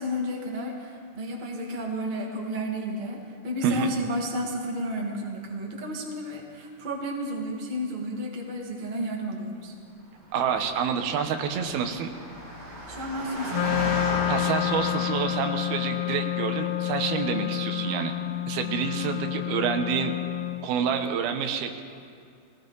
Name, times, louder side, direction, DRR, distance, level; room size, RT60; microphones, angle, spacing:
voice 1, 0.0-9.7 12.9-13.9, equal, 50° right, -1 dB, 0.5 m, -32 dB
voice 2, 3.6-3.9 10.3-12.1 14.3-18.1 18.5-20.1 20.6-21.8, right 7 dB, 80° right, 6 dB, 2.8 m, -28 dB
Engine, 10.2-15.9, equal, 30° right, 4.7 m, -36 dB
Wind instrument woodwind instrument, 13.5-20.7, left 15 dB, 85° left, 2.0 m, -29 dB
21.0 x 17.5 x 3.9 m, 2.3 s
omnidirectional pair, 4.5 m